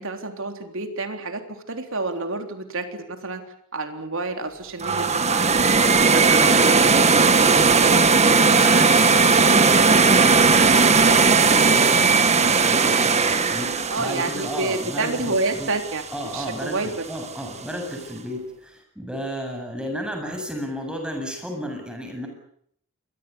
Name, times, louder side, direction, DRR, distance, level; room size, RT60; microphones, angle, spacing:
voice 1, 0.0-3.4 3.7-5.5 13.9-16.0 16.3-16.9, right 3 dB, 65° right, 6 dB, 3.6 m, -29 dB
sound 1, 4.8-15.8, right 4 dB, 30° right, 1.7 m, -17 dB
voice 2, 6.1-7.1 7.4-15.7 16.1-22.3, equal, 5° right, 3 dB, 7.9 m, -33 dB
28.0 x 23.0 x 7.1 m, 0.66 s
head